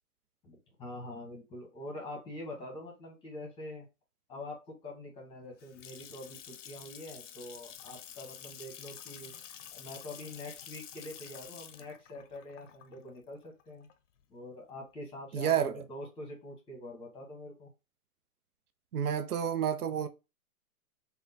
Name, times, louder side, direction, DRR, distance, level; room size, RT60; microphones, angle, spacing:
voice 1, 0.4-3.9 4.3-9.3 9.7-13.9 14.3-17.7, left 1 dB, 10° left, 0.8 m, -45 dB
Water tap faucet / Sink (filling or washing) / Splash splatter, 5.4-14.2, left 9 dB, 55° left, 0.5 m, -49 dB
voice 2, 15.3-15.8 18.9-20.1, right 9 dB, 80° right, 0.6 m, -29 dB
3.5 x 2.2 x 2.6 m
hypercardioid pair, 125°, 44 cm